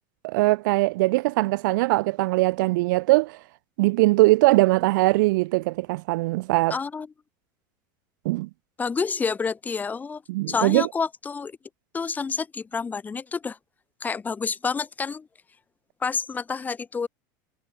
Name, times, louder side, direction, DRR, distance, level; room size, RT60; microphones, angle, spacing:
voice 1, 0.2-3.4 3.8-6.7 8.2-8.5 10.3-10.9, right 21 dB, 75° right, 0.6 m, -21 dB
voice 2, 6.7-7.1 8.8-10.2 10.5-11.6 11.9-13.6 14.0-15.3 16.0-17.1, left 5 dB, 15° left, 1.7 m, -28 dB
supercardioid pair, 140°, 10 cm